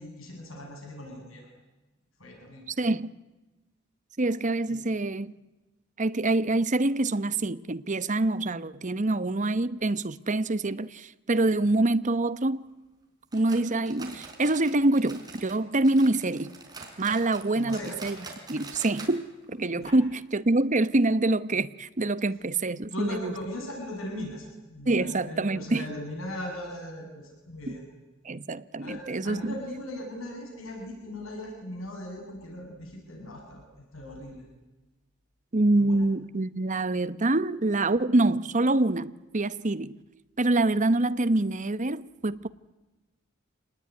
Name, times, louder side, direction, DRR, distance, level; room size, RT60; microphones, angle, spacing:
voice 1, 0.0-1.5 2.2-2.7 4.7-4.8 17.5-18.0 19.8-20.0 22.9-27.9 28.8-33.6 33.9-34.4 35.7-36.0, left 1 dB, 80° left, 7.7 m, -39 dB
voice 2, 2.7-3.1 4.2-5.3 6.0-12.6 13.3-16.5 17.0-18.2 18.5-23.3 24.9-25.9 28.2-29.5 35.5-40.0 40.4-42.5, right 2 dB, 40° right, 1.0 m, -26 dB
sound 1, 13.3-15.6 15.8-19.2 19.4-19.5 19.9-20.0 20.6-20.7, right 3 dB, 20° right, 5.0 m, -45 dB
27.5 x 19.5 x 9.6 m
head